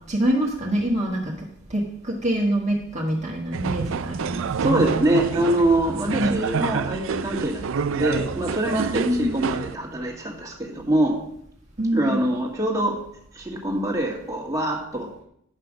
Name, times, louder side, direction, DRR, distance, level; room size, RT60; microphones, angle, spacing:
voice 1, 0.1-1.3 1.7-4.9 6.1-6.5 9.0-9.4 11.8-12.2, right 1 dB, 30° right, -2 dB, 1.3 m, -25 dB
sound 1, 3.5-9.8, right 6 dB, 65° right, 0.4 m, -28 dB
voice 2, 4.6-11.2 11.9-13.0 13.3-15.1, right 1 dB, 15° right, -1 dB, 1.7 m, -24 dB
10.5 x 5.5 x 6.3 m, 0.72 s
head